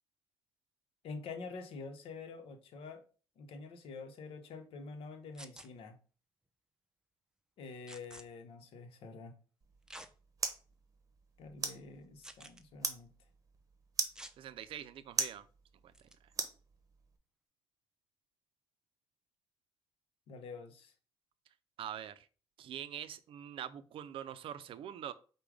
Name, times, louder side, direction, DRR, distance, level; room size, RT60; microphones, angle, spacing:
voice 1, 1.0-3.0 3.4-5.9 7.6-9.3 11.4-13.1 20.3-20.9, left 4 dB, 75° left, 7 dB, 0.8 m, -47 dB
sound 1, 5.3-5.7 7.9-8.2 9.9-10.1 10.7-10.8 12.2-12.6 14.1-14.4 15.9-16.1, right 1 dB, 5° right, 0.5 m, -50 dB
sound 2, 9.6-17.2, right 4 dB, 35° right, 0.8 m, -42 dB
voice 2, 14.4-15.5 15.8-15.9 21.8-22.3 22.6-25.1, right 10 dB, 65° right, 13 dB, 0.4 m, -44 dB
5.0 x 2.2 x 4.8 m, 0.38 s
cardioid pair, 80°, 10 cm